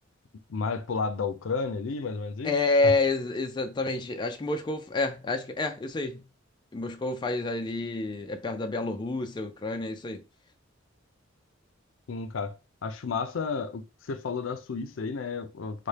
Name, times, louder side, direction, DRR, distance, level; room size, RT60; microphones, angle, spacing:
voice 1, 0.5-2.5 2.8-2.9 12.1-12.6 12.8-15.9, left 4 dB, 80° left, 0.5 m, -32 dB
voice 2, 2.4-6.2 6.7-10.2, left 3 dB, 25° left, 0.4 m, -28 dB
4.1 x 2.2 x 3.2 m
head